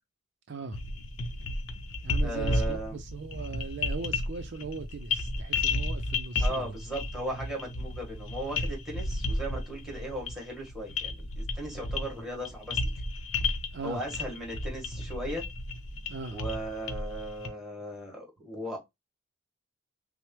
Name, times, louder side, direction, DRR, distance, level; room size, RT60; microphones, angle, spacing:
voice 1, 0.5-0.8 2.0-6.8 13.7-14.2 16.1-16.4, right 4 dB, 60° right, 0.5 m, -39 dB
sound 1, 0.7-17.5, left 2 dB, 80° left, 0.7 m, -33 dB
voice 2, 2.2-3.0 6.4-12.8 13.8-15.4 16.3-18.8, right 1 dB, ahead, 1.7 m, -37 dB
6.1 x 2.0 x 3.2 m
head